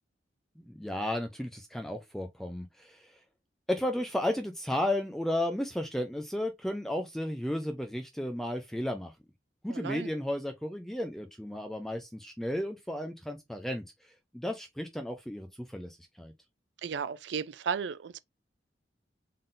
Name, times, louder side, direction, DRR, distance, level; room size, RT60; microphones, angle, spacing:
voice 1, 0.6-3.2 3.7-9.1 9.6-13.8 14.3-16.3, left 1 dB, ahead, 0.4 m, -33 dB
voice 2, 9.7-10.1 16.8-18.2, right 6 dB, 75° right, 0.4 m, -34 dB
3.8 x 3.7 x 2.5 m
head